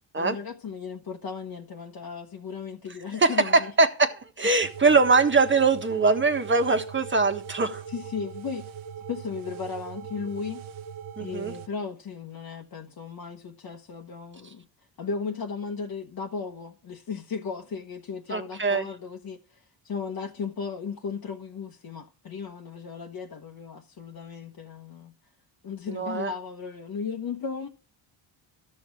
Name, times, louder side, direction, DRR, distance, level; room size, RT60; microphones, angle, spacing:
voice 1, 0.2-3.7 7.9-8.6 9.1-10.6 11.2-14.6 15.0-25.1 25.6-27.7, left 5 dB, 45° left, 1.1 m, -36 dB
voice 2, 3.2-7.8 11.2-11.5 18.3-18.9 25.9-26.3, right 3 dB, 25° right, 1.4 m, -22 dB
sound 1, 4.6-11.7, right 8 dB, 80° right, 0.9 m, -41 dB
13.0 x 6.4 x 4.7 m
cardioid pair, 80°, 47 cm